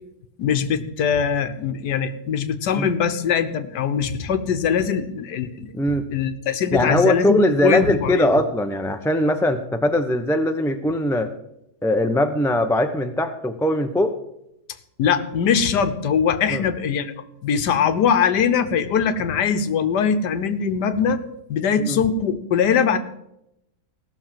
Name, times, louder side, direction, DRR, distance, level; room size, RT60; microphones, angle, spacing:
voice 1, 0.4-5.7 6.1-8.4 15.0-21.2 21.5-23.0, left 7 dB, 80° left, 9 dB, 1.6 m, -22 dB
voice 2, 6.7-11.3 11.8-14.1 16.5-16.6 21.8-22.0, left 1 dB, 5° left, 6 dB, 0.4 m, -21 dB
16.5 x 6.6 x 7.5 m, 0.81 s
omnidirectional pair, 1.8 m